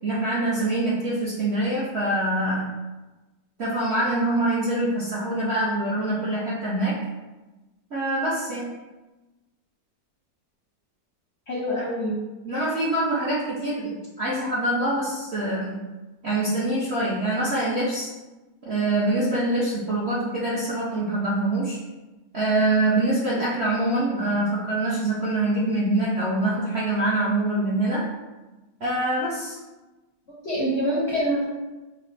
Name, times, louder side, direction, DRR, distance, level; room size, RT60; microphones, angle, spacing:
voice 1, 0.0-2.7 3.6-6.9 7.9-8.7 11.7-11.8 12.4-15.8 16.2-18.1 18.6-21.8 22.3-28.0 28.8-29.6, right 1 dB, 60° right, -7 dB, 0.7 m, -24 dB
voice 2, 11.5-12.2 30.4-31.4, equal, 55° left, -6 dB, 0.7 m, -25 dB
5.5 x 2.0 x 3.2 m, 1.1 s
omnidirectional pair, 1.9 m